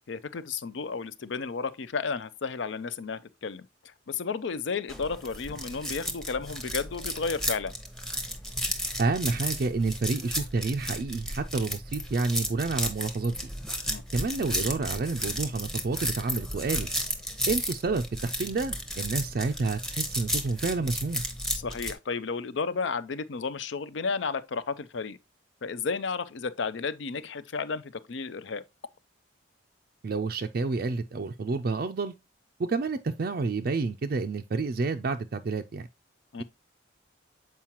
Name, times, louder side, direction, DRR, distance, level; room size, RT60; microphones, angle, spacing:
voice 1, 0.1-7.7 13.9-14.0 21.5-25.2 25.6-28.6 36.3-36.4, left 5 dB, 70° left, 0.5 m, -33 dB
sound 1, 4.9-21.9, equal, 5° left, 0.8 m, -33 dB
voice 2, 9.0-13.4 14.1-16.9 17.5-21.2 30.0-32.1 32.6-35.9, right 3 dB, 50° right, 0.4 m, -29 dB
7.3 x 4.6 x 2.9 m
head